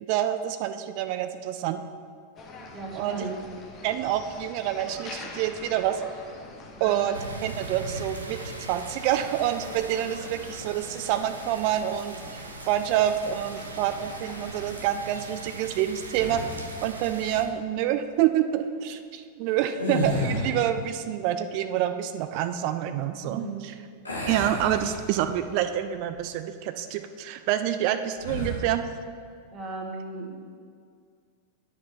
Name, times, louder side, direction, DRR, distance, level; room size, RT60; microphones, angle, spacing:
voice 1, 0.1-1.8 3.0-3.3 3.8-6.0 6.8-8.4 8.7-23.7 24.3-28.9, right 11 dB, 45° right, 9 dB, 0.3 m, -27 dB
sound 1, 2.4-14.9, left 3 dB, 30° left, 1.1 m, -45 dB
voice 2, 2.7-3.4 6.8-7.1 23.2-23.6 29.5-30.6, right 3 dB, 25° right, 0 dB, 1.4 m, -36 dB
sound 2, 7.1-17.5, right 2 dB, 75° right, 0.7 m, -40 dB
sound 3, 16.1-16.8 19.7-20.8 24.0-25.5 26.0-26.2 28.2-28.7, left 1 dB, 80° left, 1.9 m, -31 dB
10.0 x 4.7 x 4.6 m, 2.1 s
figure-of-eight pair, 90°, 0 cm